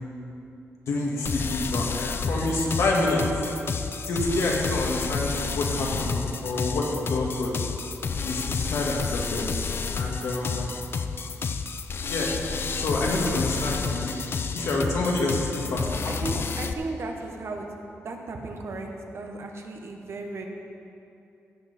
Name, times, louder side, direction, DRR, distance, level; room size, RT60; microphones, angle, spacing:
voice 1, 0.9-3.2 4.1-7.5 8.2-9.4 9.9-10.7 12.1-12.5 12.8-14.2 14.5-16.1, left 2 dB, 80° left, -2 dB, 1.9 m, -27 dB
sound 1, 1.2-16.7, left 5 dB, 50° left, 0.5 m, -30 dB
voice 2, 16.1-17.7 18.0-20.5, right 3 dB, 60° right, 3 dB, 1.1 m, -35 dB
15.5 x 7.2 x 4.2 m, 2.8 s
wide cardioid pair, 115°, 5 cm